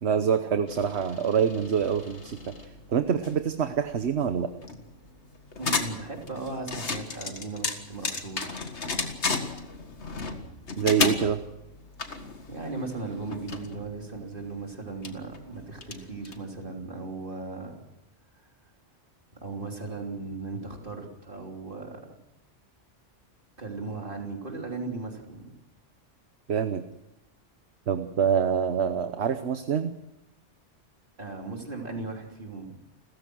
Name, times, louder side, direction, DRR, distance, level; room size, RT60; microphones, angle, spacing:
voice 1, 0.0-2.5 2.9-4.5 10.8-11.4 26.5-26.8 27.9-29.9, right 7 dB, 65° right, 9 dB, 1.3 m, -25 dB
sound 1, 0.7-16.6, left 4 dB, 65° left, 2.1 m, -35 dB
voice 2, 5.6-8.7 12.5-17.8 19.4-22.0 23.6-25.5 31.2-32.8, right 3 dB, 45° right, 1 dB, 3.5 m, -37 dB
29.5 x 14.5 x 6.3 m, 0.89 s
omnidirectional pair, 1.2 m